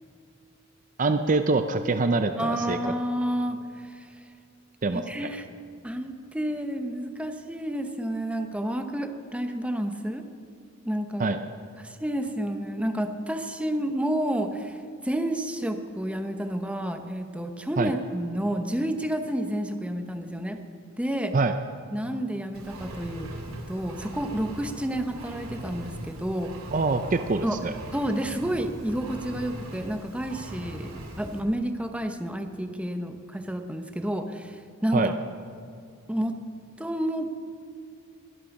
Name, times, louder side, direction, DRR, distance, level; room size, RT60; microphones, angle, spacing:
voice 1, 1.0-2.8 4.8-5.0 11.2-11.4 17.8-17.9 21.3-21.5 26.7-27.7 34.9-35.1, right 3 dB, 40° right, 8 dB, 0.6 m, -24 dB
voice 2, 2.4-4.1 4.9-5.5 5.8-10.2 10.8-11.4 11.8-14.8 15.0-20.6 21.0-21.4 21.9-23.3 23.7-26.5 27.4-27.6 27.9-35.1 36.1-36.3 36.8-37.3, right 1 dB, 5° right, 6 dB, 0.9 m, -30 dB
Engine, 22.5-31.4, right 1 dB, 90° right, 2.7 m, -40 dB
22.0 x 12.0 x 5.4 m, 2.4 s
head